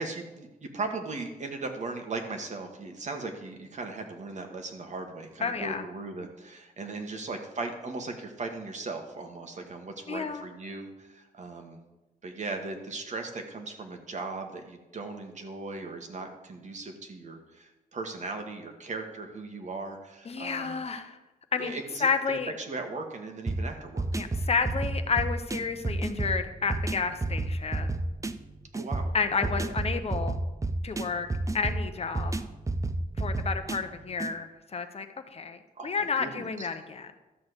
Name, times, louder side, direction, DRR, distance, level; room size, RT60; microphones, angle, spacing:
voice 1, 0.0-11.8 12.2-20.8 21.6-24.0 28.7-29.1 29.6-29.7 35.8-36.7, right 3 dB, 50° right, 4 dB, 1.5 m, -38 dB
voice 2, 5.4-5.9 10.1-10.4 20.3-21.2 21.5-21.7 22.0-22.5 24.2-28.0 29.1-30.4 30.8-31.3 31.5-32.4 33.2-35.1 35.3-37.1, left 5 dB, 40° left, 8 dB, 0.8 m, -31 dB
sound 1, 23.5-34.3, right 2 dB, 20° right, 0.5 m, -31 dB
12.5 x 4.2 x 7.9 m, 1.0 s
wide cardioid pair, 135°, 15 cm